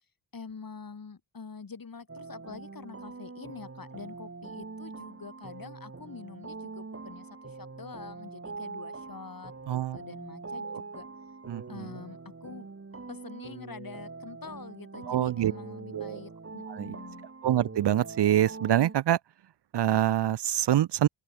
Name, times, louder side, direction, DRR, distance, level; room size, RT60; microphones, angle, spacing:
voice 1, 0.3-11.1 11.7-12.7 13.1-17.3, left 5 dB, 45° left, 4.2 m, -46 dB
sound 1, 2.1-18.9, right 4 dB, 30° right, 2.5 m, -43 dB
voice 2, 9.7-10.0 10.7-10.8 11.5-11.9 15.1-15.5 15.9-16.2 16.7-16.9 17.4-19.2 19.7-21.1, right 12 dB, 60° right, 0.6 m, -25 dB
open air
wide cardioid pair, 90°, 48 cm